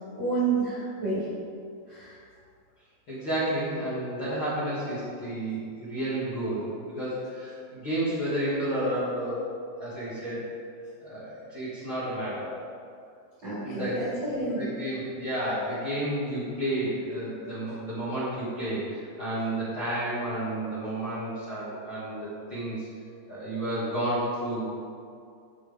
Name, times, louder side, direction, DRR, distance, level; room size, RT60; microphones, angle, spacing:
voice 1, 0.2-1.2 1.9-2.2 13.4-14.7, right 3 dB, 40° right, -11 dB, 1.7 m, -29 dB
voice 2, 3.1-6.7 6.9-9.4 9.8-10.5 11.0-12.5 13.6-22.9 23.3-24.6, right 1 dB, 45° left, -11 dB, 1.8 m, -31 dB
13.5 x 5.0 x 3.6 m, 2.4 s
omnidirectional pair, 5.3 m